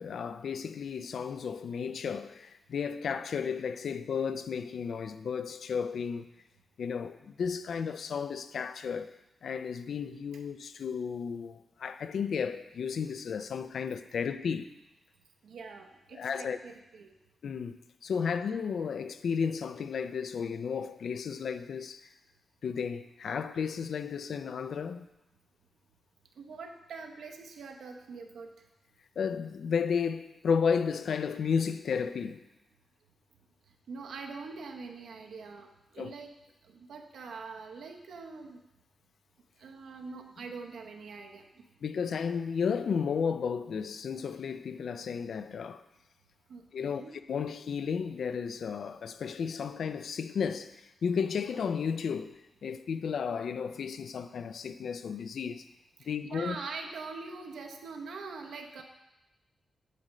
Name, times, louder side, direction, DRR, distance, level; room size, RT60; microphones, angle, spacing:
voice 1, 0.0-6.3 6.8-14.7 16.1-16.6 17.4-22.1 22.6-25.1 29.2-32.5 36.0-36.1 41.8-45.8 46.7-47.0 47.3-55.7 56.0-56.6, left 6 dB, 65° left, 0.3 m, -33 dB
voice 2, 15.4-17.1 26.4-28.7 33.7-36.3 36.6-38.6 39.6-41.6 46.5-47.1 56.0-58.8, right 4 dB, 85° right, 0.8 m, -44 dB
9.1 x 3.1 x 6.4 m
wide cardioid pair, 175°, 0 cm